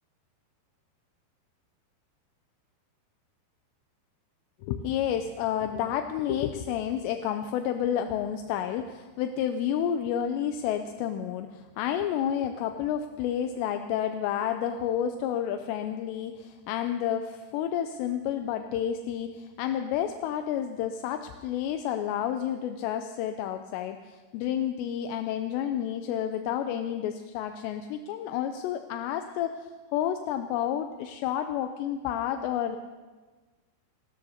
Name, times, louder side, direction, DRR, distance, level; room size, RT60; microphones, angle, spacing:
voice 1, 4.6-32.8, left 9 dB, 85° left, 7 dB, 2.6 m, -30 dB
28.5 x 13.0 x 2.8 m, 1.3 s
omnidirectional pair, 5.3 m